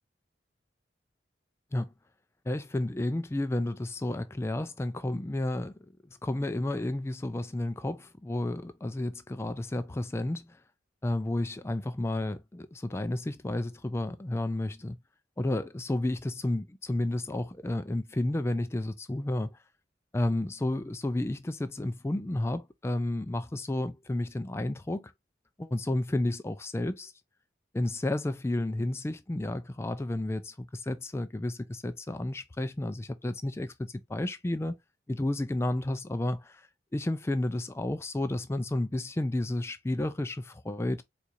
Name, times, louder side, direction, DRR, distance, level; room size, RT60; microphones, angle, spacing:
voice 1, 2.5-5.7 6.2-10.6 11.0-15.0 15.4-19.5 20.1-25.1 25.6-27.1 27.7-34.8 35.1-36.7 36.9-41.0, left 1 dB, 15° left, 0.3 m, -31 dB
4.4 x 2.5 x 2.6 m
head